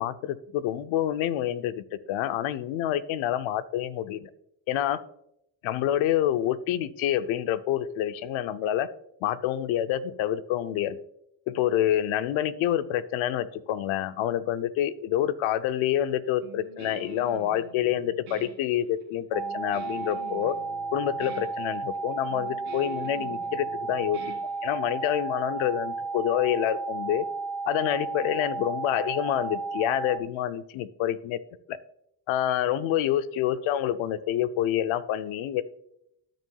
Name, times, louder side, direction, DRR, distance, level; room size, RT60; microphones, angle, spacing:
voice 1, 0.0-4.3 4.7-5.0 5.6-8.9 9.2-11.0 11.5-20.6 20.9-24.3 24.6-27.2 27.7-31.4 31.7-31.8 32.3-35.6, left 11 dB, 80° left, 13 dB, 0.6 m, -27 dB
Guitar, 16.4-25.1, right 4 dB, 85° right, 2.8 m, -45 dB
sound 1, 19.3-30.2, right 4 dB, 5° right, 0.3 m, -33 dB
13.0 x 6.2 x 2.3 m, 0.78 s
cardioid pair, 85°, 46 cm